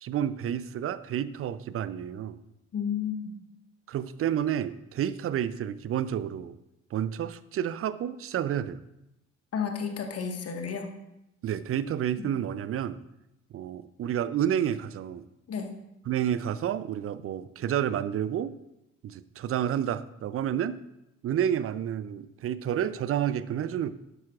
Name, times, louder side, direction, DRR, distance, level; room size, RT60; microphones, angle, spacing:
voice 1, 0.0-2.4 3.9-6.6 6.9-8.8 11.4-13.0 13.5-15.3 16.1-18.6 19.0-20.8 21.2-23.9, right 10 dB, 35° right, 16 dB, 0.6 m, -30 dB
voice 2, 2.7-3.3 9.5-10.9 12.2-12.3 15.5-15.7, left 7 dB, 40° left, 4 dB, 1.7 m, -32 dB
12.0 x 11.5 x 2.5 m, 0.88 s
figure-of-eight pair, 45°, 38 cm